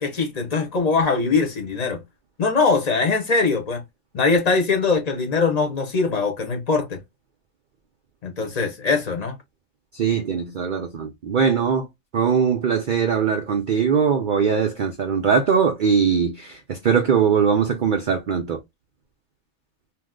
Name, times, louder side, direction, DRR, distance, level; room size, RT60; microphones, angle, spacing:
voice 1, 0.0-2.0 2.4-3.8 4.1-7.0 8.2-9.4, left 4 dB, 40° left, 0.6 m, -22 dB
voice 2, 9.9-11.9 12.1-18.6, right 6 dB, 70° right, 0.4 m, -21 dB
2.8 x 2.0 x 3.5 m
omnidirectional pair, 1.4 m